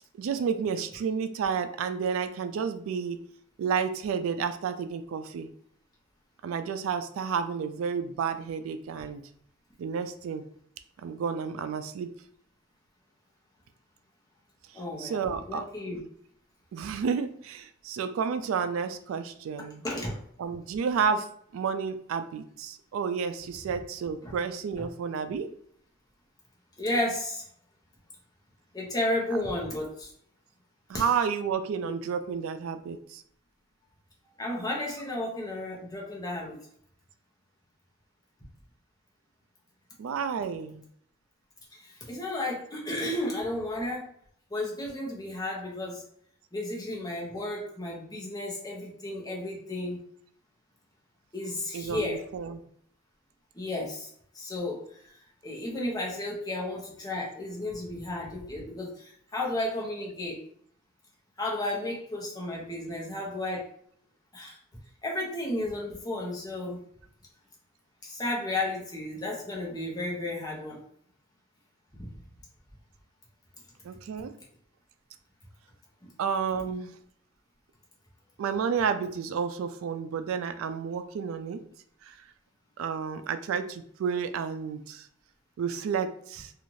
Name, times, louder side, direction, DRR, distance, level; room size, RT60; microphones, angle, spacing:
voice 1, 0.2-3.2 3.6-5.5 6.4-9.2 9.8-10.4 11.0-12.1 15.0-15.6 16.7-19.8 20.4-21.3 21.5-25.5 30.9-33.2 40.0-40.9 51.7-52.6 73.8-74.3 76.2-76.9 78.4-81.6 82.0-82.1 82.8-85.1 85.6-86.5, right 6 dB, 85° right, 10 dB, 0.3 m, -31 dB
voice 2, 14.7-15.2 15.5-16.0 19.8-20.2 24.2-24.3 26.8-27.4 28.7-30.1 30.9-31.0 31.8-31.9 34.4-36.6 41.7-44.1 44.5-46.0 46.5-50.0 51.3-52.2 53.5-54.1 54.3-55.1 55.4-60.4 61.4-63.7 64.3-64.6 65.0-66.9 68.0-70.8 72.0-72.1 76.0-76.1, left 1 dB, 20° left, -2 dB, 0.7 m, -33 dB
2.6 x 2.4 x 3.0 m, 0.64 s
head